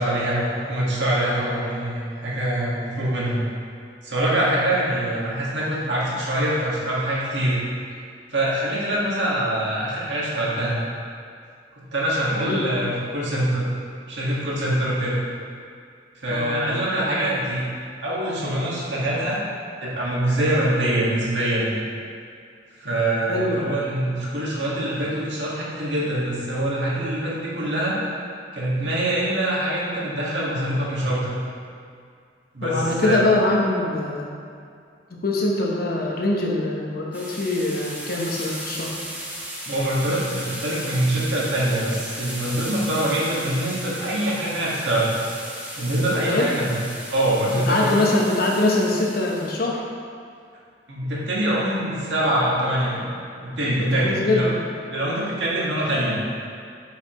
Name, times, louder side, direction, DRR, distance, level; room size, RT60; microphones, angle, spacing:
voice 1, 0.0-3.4 4.0-7.6 8.3-10.8 11.8-13.7 14.1-15.2 16.2-17.7 18.0-19.4 19.8-21.7 22.8-28.0 28.5-31.4 32.5-33.2 39.6-45.1 45.8-46.8 47.1-48.0 50.9-53.1 53.4-54.5 54.9-56.2, right 1 dB, 75° right, -6 dB, 1.8 m, -24 dB
voice 2, 12.4-12.7 16.3-16.6 23.3-23.7 32.6-34.3 35.1-39.0 46.1-46.5 47.6-49.8 53.8-54.6, left 2 dB, 55° left, -2 dB, 1.0 m, -23 dB
sound 1, 37.1-49.6, right 1 dB, 10° right, 1.1 m, -36 dB
8.6 x 5.7 x 3.1 m, 2.3 s
head